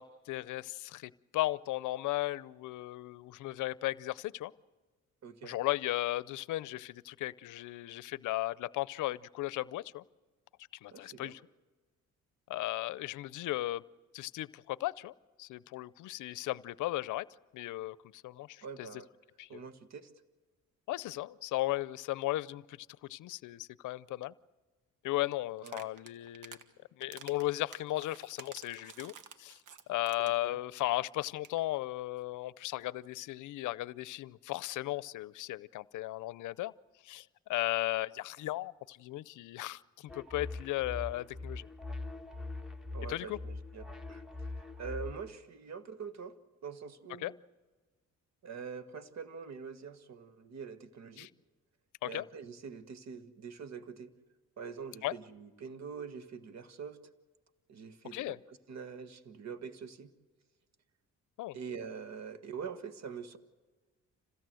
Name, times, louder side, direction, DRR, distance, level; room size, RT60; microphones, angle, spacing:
voice 1, 0.0-4.5 5.4-10.0 10.8-11.4 12.5-13.8 14.1-15.1 15.4-17.3 17.5-19.0 19.4-19.6 20.9-24.3 25.0-26.7 27.0-29.1 29.4-29.6 29.9-36.7 37.0-41.7 43.1-43.4 47.2-47.3 51.2-51.3 52.0-52.3 55.0-55.1 58.1-58.4 61.4-61.6, left 16 dB, 80° left, 20 dB, 0.6 m, -36 dB
voice 2, 5.2-5.6 10.9-11.3 18.6-19.1 19.5-20.1 25.6-25.8 30.2-30.6 42.9-44.2 44.8-46.4 46.6-47.3 48.4-51.3 52.0-54.1 54.6-57.0 57.7-60.1 61.5-63.4, right 6 dB, 60° right, 11 dB, 1.6 m, -44 dB
sound 1, 25.6-26.6 27.0-30.5 30.8-30.9 31.1-31.2 31.4-31.6, right 7 dB, 85° right, 1.5 m, -51 dB
sound 2, 40.1-45.3, left 2 dB, ahead, 1.4 m, -42 dB
27.0 x 16.5 x 7.7 m, 1.3 s
cardioid pair, 90°, 30 cm